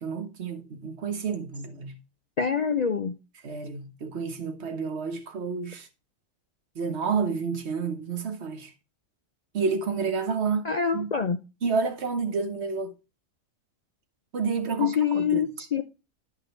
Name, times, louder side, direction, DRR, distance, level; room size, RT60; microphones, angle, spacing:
voice 1, 0.0-1.9 3.4-5.9 6.7-8.7 9.5-11.1 11.6-12.9 14.3-15.4, right 5 dB, 55° right, 1.3 m, -30 dB
voice 2, 2.4-3.2 10.6-11.4 14.8-15.8, left 7 dB, 70° left, 0.4 m, -25 dB
10.0 x 5.5 x 3.1 m
omnidirectional pair, 1.4 m